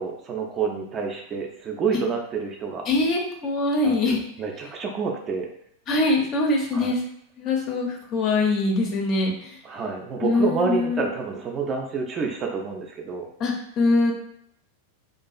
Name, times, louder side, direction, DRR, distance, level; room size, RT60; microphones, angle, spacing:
voice 1, 0.0-2.9 3.8-5.5 6.7-6.9 9.6-13.3, right 5 dB, 25° right, 2 dB, 0.3 m, -28 dB
voice 2, 2.9-4.2 5.9-7.0 7.4-9.6 10.2-11.1 13.4-14.1, left 2 dB, 35° left, 0 dB, 0.5 m, -23 dB
2.4 x 2.3 x 2.3 m, 0.72 s
figure-of-eight pair, 90°, 0 cm